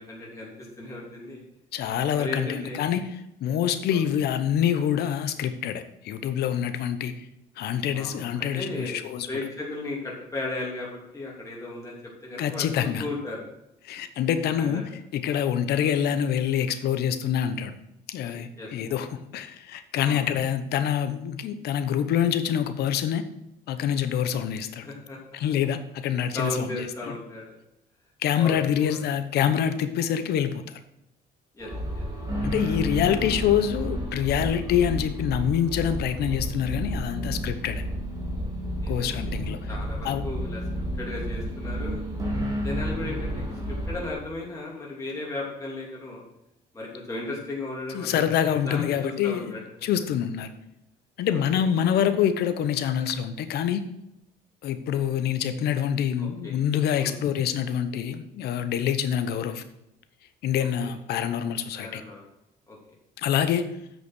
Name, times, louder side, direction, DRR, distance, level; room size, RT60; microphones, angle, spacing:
voice 1, 0.0-1.4 2.2-2.8 3.9-4.0 7.9-9.0 9.3-13.4 14.6-14.8 18.6-18.7 20.1-20.3 24.8-25.2 26.3-27.6 28.4-29.0 31.5-32.0 38.8-39.3 39.7-40.6 41.0-42.0 42.6-46.2 46.7-49.8 51.3-51.7 56.2-56.6 57.0-57.2 60.6-60.9 61.7-62.2 62.7-62.8, left 2 dB, 15° left, -4 dB, 3.1 m, -36 dB
voice 2, 1.7-3.1 3.4-7.2 7.6-9.3 12.4-13.0 13.8-14.8 15.1-17.7 18.1-23.2 23.7-24.9 25.3-27.1 28.2-30.8 32.4-37.8 38.9-39.6 40.0-40.3 47.9-49.5 49.8-50.5 51.2-53.8 54.6-59.6 60.4-62.0 63.2-63.7, left 9 dB, 70° left, 11 dB, 1.0 m, -26 dB
sound 1, 31.6-44.1, equal, 20° right, 3.0 m, -31 dB
8.4 x 6.3 x 6.2 m, 0.84 s
cardioid pair, 110°, 17 cm